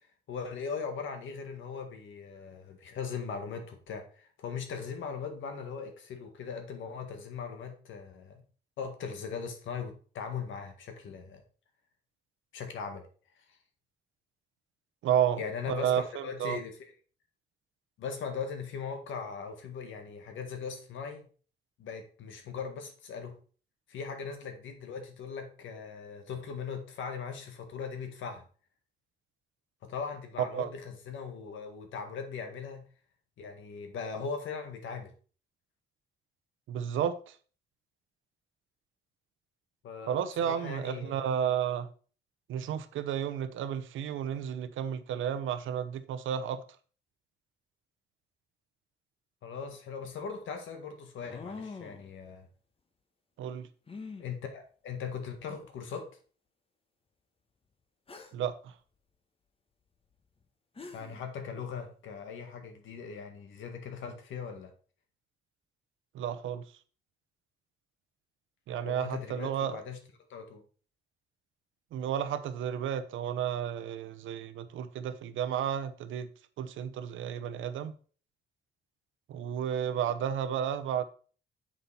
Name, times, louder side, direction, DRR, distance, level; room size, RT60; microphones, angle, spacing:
voice 1, 0.3-8.4 8.8-11.4 12.5-13.1 15.4-16.9 18.0-21.2 21.8-23.4 23.9-28.4 29.8-32.8 33.4-35.1 39.8-41.3 49.4-52.5 54.2-56.1 60.9-64.7 68.8-70.0 70.3-70.6, left 6 dB, 75° left, 1.8 m, -39 dB
voice 2, 15.0-15.4 15.7-16.6 30.5-30.7 36.7-37.3 40.1-41.9 42.5-46.6 53.4-53.7 58.3-58.7 66.1-66.6 68.7-69.8 71.9-76.3 76.6-77.9 79.3-81.0, right 9 dB, 80° right, 0.8 m, -32 dB
sound 1, 49.7-49.8 51.2-52.1 53.9-54.3 55.3-55.4 55.9-56.0 58.1-58.5 60.4-60.5 60.8-61.2, left 4 dB, 30° left, 1.2 m, -44 dB
7.4 x 5.4 x 4.2 m
cardioid pair, 90°, 20 cm